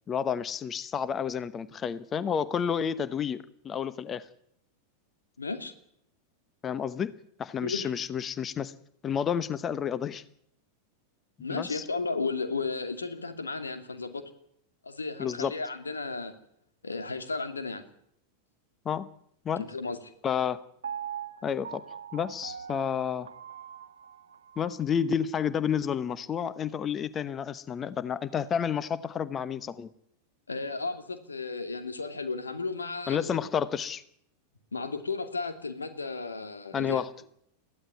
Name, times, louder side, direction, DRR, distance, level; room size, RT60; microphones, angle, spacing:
voice 1, 0.1-4.3 6.6-7.1 7.4-8.7 9.0-10.2 11.5-11.8 15.2-15.5 18.8-19.1 19.4-19.6 20.2-20.6 21.4-21.8 22.1-23.3 24.6-29.9 33.1-34.0 36.7-37.1, left 7 dB, 25° left, 16 dB, 1.0 m, -30 dB
voice 2, 5.4-5.7 7.6-7.9 11.4-14.2 14.8-16.3 16.8-17.8 19.6-20.0 30.5-33.2 34.7-37.0, left 4 dB, 75° left, 8 dB, 2.5 m, -34 dB
Piano, 20.8-24.9 25.4-25.5, right 8 dB, 70° right, 1.1 m, -41 dB
22.0 x 15.5 x 9.6 m, 0.72 s
figure-of-eight pair, 90°, 0 cm